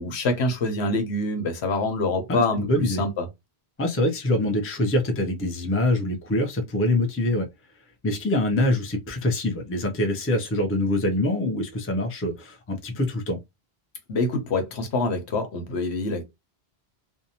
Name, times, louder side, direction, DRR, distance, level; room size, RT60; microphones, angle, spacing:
voice 1, 0.0-3.3 14.1-16.2, left 2 dB, 80° left, 1.1 m, -26 dB
voice 2, 2.3-3.1 3.8-7.5 8.0-13.4, left 1 dB, 20° left, 0.4 m, -24 dB
2.7 x 2.2 x 2.7 m
omnidirectional pair, 1.1 m